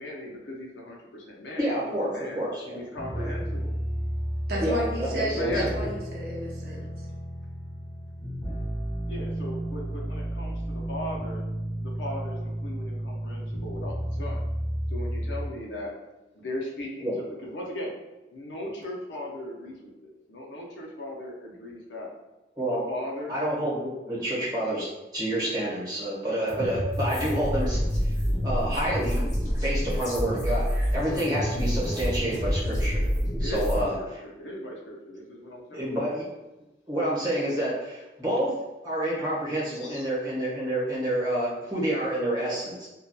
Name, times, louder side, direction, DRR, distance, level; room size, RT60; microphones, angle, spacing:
voice 1, 0.0-2.4 2.7-3.8 5.3-5.8 9.1-11.4 11.8-14.4 14.9-15.9 16.3-17.9 18.3-22.1 22.6-23.3 33.4-36.0 39.7-40.0, left 1 dB, 90° left, -1 dB, 0.6 m, -37 dB
voice 2, 1.6-2.8 3.2-3.3 4.6-5.8 17.0-17.1 22.6-22.8 23.3-24.9 25.1-28.1 28.4-29.2 29.6-33.1 33.4-33.9 35.7-36.2 36.9-38.6 38.8-42.9, right 1 dB, 20° right, -8 dB, 0.9 m, -28 dB
sound 1, 3.0-15.5, right 1 dB, 20° left, 0.5 m, -32 dB
voice 3, 4.5-6.8, right 1 dB, 60° right, -2 dB, 0.6 m, -32 dB
sound 2, 26.5-33.8, equal, 45° left, 0.9 m, -27 dB
2.7 x 2.2 x 2.2 m, 1.1 s
head